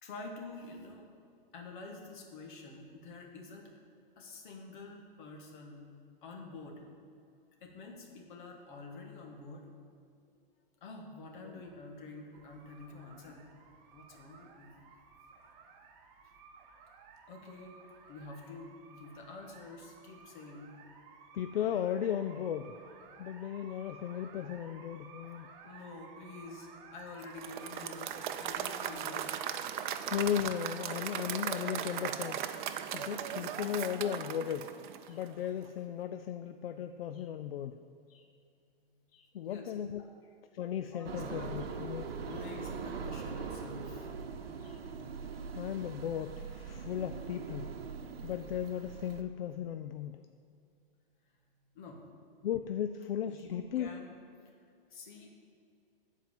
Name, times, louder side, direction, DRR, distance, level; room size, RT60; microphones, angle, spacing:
voice 1, 0.0-1.1 1.5-3.7 4.2-5.9 6.2-6.8 7.6-9.7 10.8-13.4 13.9-14.7 16.2-16.3 17.3-17.8 18.1-20.7 25.6-29.4 38.8-39.0 39.4-39.7 40.0-40.1 40.9-41.7 42.3-44.1 44.5-44.6 51.7-52.5 53.2-54.1 54.9-55.3, left 3 dB, 55° left, 1 dB, 1.7 m, -48 dB
sound 1, 12.3-32.1, right 5 dB, 40° right, 0.9 m, -55 dB
voice 2, 21.3-22.8 23.2-25.5 30.1-32.6 32.9-34.7 35.1-37.8 38.1-38.3 39.1-40.0 40.5-42.0 44.6-44.8 45.5-47.7 48.2-50.2 52.4-53.9, left 9 dB, 80° left, 9 dB, 0.4 m, -36 dB
Applause / Crowd, 27.2-35.4, right 9 dB, 55° right, 0.5 m, -38 dB
sound 2, 41.0-49.2, right 5 dB, 85° right, 0.8 m, -42 dB
7.7 x 4.6 x 7.2 m, 2.4 s
hypercardioid pair, 135°, 29 cm